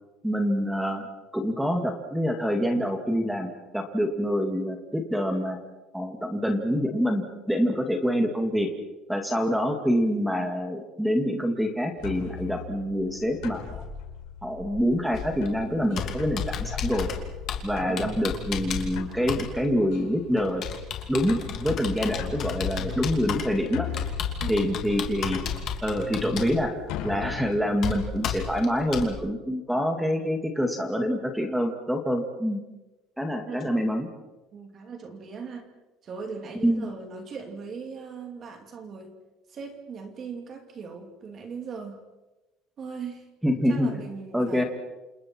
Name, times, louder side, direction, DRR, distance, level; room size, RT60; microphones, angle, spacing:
voice 1, 0.2-1.1 1.3-5.6 5.9-8.7 9.1-13.8 14.4-17.1 17.6-20.6 21.1-23.9 24.5-25.4 25.8-32.6 33.2-34.1 36.6-36.9 43.4-43.9 44.3-44.6, equal, ahead, 4 dB, 2.3 m, -26 dB
sound 1, 12.0-28.9, left 8 dB, 75° left, 5.3 m, -40 dB
Computer keyboard, 15.1-29.1, left 7 dB, 40° left, 2.8 m, -34 dB
voice 2, 17.9-18.3 24.4-24.8 29.7-30.0 33.4-33.8 34.5-35.7 36.0-39.1 39.5-42.0 42.8-43.3 43.7-44.6, right 5 dB, 35° right, 5 dB, 2.8 m, -39 dB
29.5 x 28.0 x 4.6 m, 1.1 s
cardioid pair, 165°, 0 cm